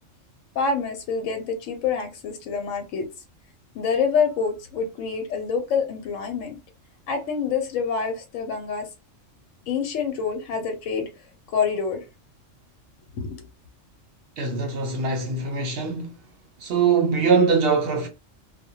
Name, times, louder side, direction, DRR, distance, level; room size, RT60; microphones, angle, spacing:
voice 1, 0.5-3.1 3.7-6.6 7.1-8.9 9.7-11.1 11.5-12.0 13.2-13.5, left 5 dB, 85° left, 1.0 m, -26 dB
voice 2, 14.4-16.2 16.6-18.1, right 5 dB, 60° right, 0.7 m, -22 dB
2.2 x 2.1 x 2.7 m
omnidirectional pair, 1.3 m